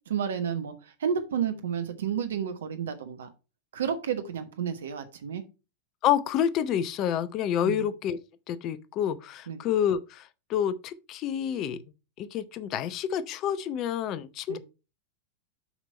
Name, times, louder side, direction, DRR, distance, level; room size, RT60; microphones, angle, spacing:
voice 1, 0.1-0.7 1.0-3.3 3.7-5.4 7.6-7.9 9.5-9.6 14.5-14.6, right 7 dB, 65° right, 1.2 m, -31 dB
voice 2, 6.0-8.2 8.5-11.8 12.2-14.6, left 9 dB, 35° left, 0.6 m, -28 dB
7.3 x 5.2 x 4.2 m
figure-of-eight pair, 90°, 0 cm